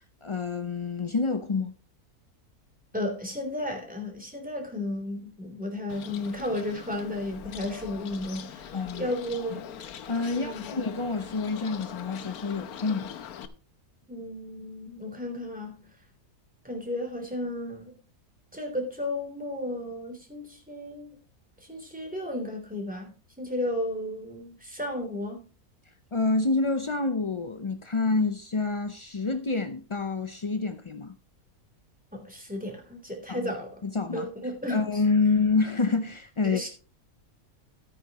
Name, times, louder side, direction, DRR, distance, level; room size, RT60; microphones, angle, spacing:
voice 1, 0.2-1.7 8.7-9.1 10.1-13.1 26.1-31.1 33.3-33.5 33.8-34.3 34.7-36.6, left 3 dB, 50° left, 0.3 m, -27 dB
voice 2, 2.9-9.7 10.3-10.7 14.1-15.9 16.6-17.9 18.5-21.2 21.6-23.1 23.4-25.5 32.1-33.7 34.1-34.8 36.4-36.7, left 1 dB, 5° right, 3.3 m, -33 dB
Bird, 5.9-13.5, left 8 dB, 75° left, 1.3 m, -42 dB
14.0 x 9.2 x 3.0 m
omnidirectional pair, 1.6 m